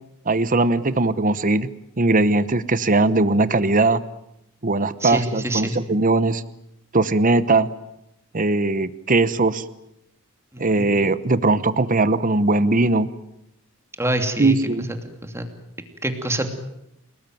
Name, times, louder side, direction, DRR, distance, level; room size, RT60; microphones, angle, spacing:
voice 1, 0.3-1.7 2.0-4.0 4.6-6.4 6.9-7.7 8.3-9.6 10.6-13.1 14.4-14.9, right 2 dB, 35° right, 14 dB, 1.0 m, -19 dB
voice 2, 5.0-5.7 10.5-10.9 14.0-14.5 15.0-15.5 16.0-16.5, right 1 dB, 10° right, 6 dB, 2.7 m, -26 dB
29.0 x 19.5 x 9.3 m, 0.84 s
head